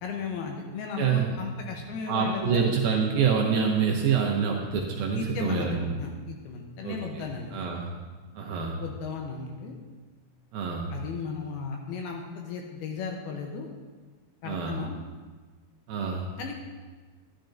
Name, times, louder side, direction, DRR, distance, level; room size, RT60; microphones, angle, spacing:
voice 1, 0.0-2.6 5.2-7.6 8.8-9.8 10.9-13.7 14.4-15.0 16.4-16.5, left 5 dB, 80° left, 1 dB, 2.5 m, -35 dB
voice 2, 1.0-1.3 2.1-6.0 6.8-7.2 7.5-7.9 8.4-8.8 10.5-10.9 14.4-14.8 15.9-16.3, right 6 dB, 75° right, 0 dB, 2.3 m, -26 dB
13.0 x 10.5 x 2.6 m, 1.4 s
omnidirectional pair, 4.9 m